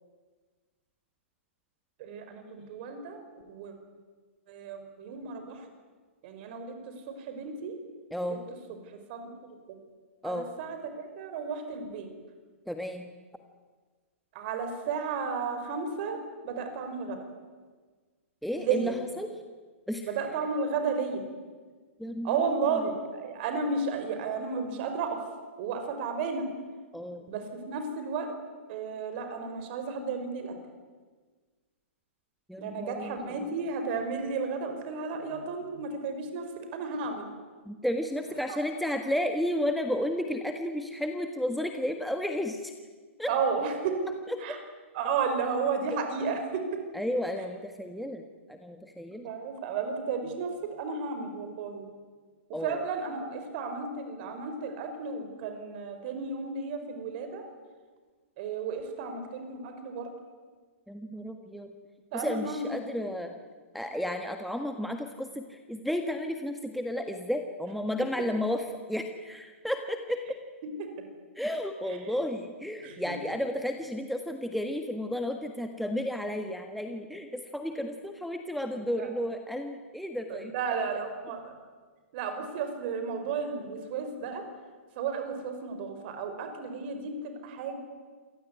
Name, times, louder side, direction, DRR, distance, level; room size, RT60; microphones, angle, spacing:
voice 1, 2.0-3.2 3.5-3.7 4.5-5.6 6.2-6.8 7.1-7.7 8.2-8.4 9.1-9.2 10.2-12.1 14.4-16.2 16.4-17.2 18.6-18.9 20.1-21.2 22.2-25.2 25.6-26.5 27.3-28.3 28.7-30.5 32.6-36.4 36.7-37.2 38.5-38.6 43.3-43.9 44.4-44.6 44.9-46.6 49.2-50.5 50.8-51.9 52.6-57.4 58.4-60.1 62.1-62.8 70.8-70.9 72.8-73.0 79.0-79.1 80.3-81.5 82.1-84.4 85.0-87.8, right 5 dB, 45° right, 7 dB, 5.3 m, -33 dB
voice 2, 8.1-8.4 10.2-10.5 12.7-13.1 18.4-19.3 19.9-20.1 22.0-22.9 26.9-27.2 32.5-33.3 37.7-42.7 43.2-43.3 44.3-44.6 46.9-48.2 48.5-49.3 52.5-52.8 60.9-61.7 62.1-63.3 63.7-70.2 71.3-80.5, left 1 dB, ahead, 5 dB, 1.6 m, -32 dB
26.5 x 18.5 x 9.7 m, 1.4 s
hypercardioid pair, 125°, 7 cm